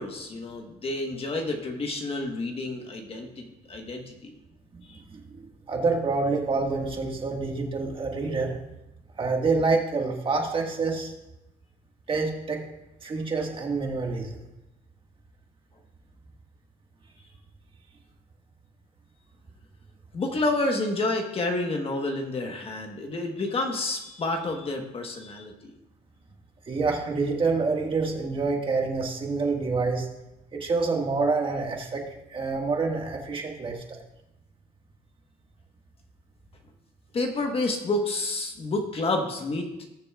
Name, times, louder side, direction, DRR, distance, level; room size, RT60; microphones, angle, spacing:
voice 1, 0.0-4.3 4.9-5.0 20.1-25.7 37.1-39.7, left 2 dB, 35° left, 3 dB, 1.3 m, -29 dB
voice 2, 5.1-5.4 5.7-8.6 9.2-11.1 12.1-12.6 13.0-14.3 26.7-30.1 30.5-32.0 32.3-33.8, right 4 dB, 30° right, 1 dB, 1.8 m, -27 dB
19.0 x 6.8 x 2.4 m, 0.94 s
cardioid pair, 110°, 17 cm